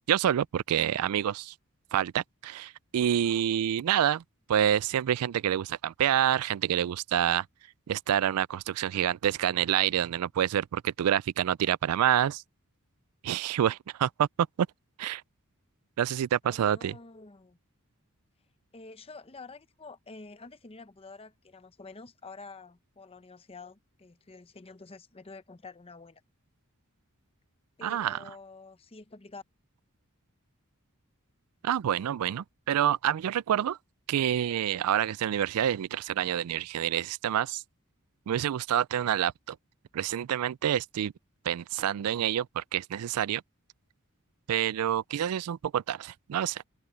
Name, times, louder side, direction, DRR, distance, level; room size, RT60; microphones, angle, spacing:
voice 1, 0.1-1.5 1.9-4.2 4.5-7.4 7.9-12.4 13.2-14.3 15.0-15.2 16.0-17.0 27.8-28.2 31.6-33.8 34.1-37.6 38.3-39.6 39.9-41.1 41.5-43.4 44.5-46.6, right 10 dB, 80° right, 0.3 m, -27 dB
voice 2, 16.4-17.6 18.7-26.2 27.8-29.4, left 3 dB, 25° left, 0.7 m, -48 dB
head